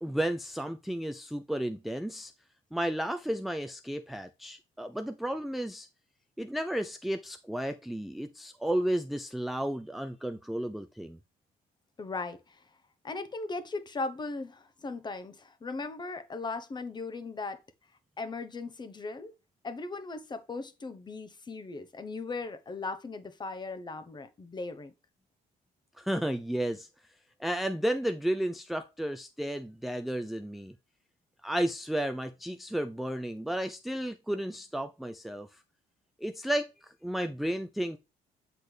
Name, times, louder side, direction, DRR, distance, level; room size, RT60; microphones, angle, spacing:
voice 1, 0.0-2.3 2.7-5.9 6.4-11.2 26.0-26.9 27.4-30.7 31.4-35.5 36.2-36.7 37.0-38.0, right 1 dB, ahead, 0.5 m, -32 dB
voice 2, 12.0-12.6 13.0-17.6 18.2-19.3 19.6-24.9, left 3 dB, 25° left, 1.1 m, -38 dB
8.2 x 4.3 x 3.4 m
cardioid pair, 110°, 17 cm